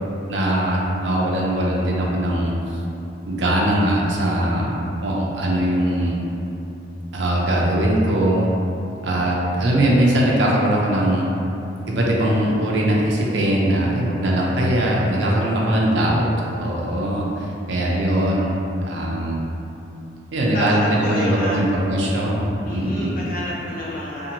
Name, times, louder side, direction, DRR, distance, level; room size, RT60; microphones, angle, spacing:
voice 1, 0.3-2.5 3.3-6.2 7.1-8.5 9.0-11.3 11.9-16.3 16.6-18.5 18.8-19.5 20.3-23.2, right 1 dB, 75° right, -3 dB, 0.5 m, -21 dB
voice 2, 20.5-21.6 22.6-24.3, left 1 dB, 50° left, -7 dB, 0.5 m, -29 dB
2.6 x 2.5 x 2.8 m, 2.9 s
head